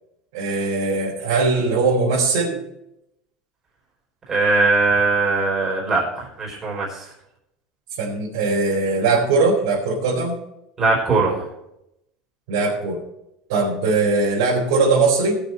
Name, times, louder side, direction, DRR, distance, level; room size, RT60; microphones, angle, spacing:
voice 1, 0.3-2.6 8.0-10.4 12.5-13.0 13.5-15.4, right 3 dB, 80° right, -6 dB, 4.2 m, -20 dB
voice 2, 4.3-7.1 10.8-11.5, right 3 dB, 20° right, -2 dB, 4.6 m, -20 dB
19.0 x 6.8 x 4.4 m, 0.82 s
cardioid pair, 160°, 2 cm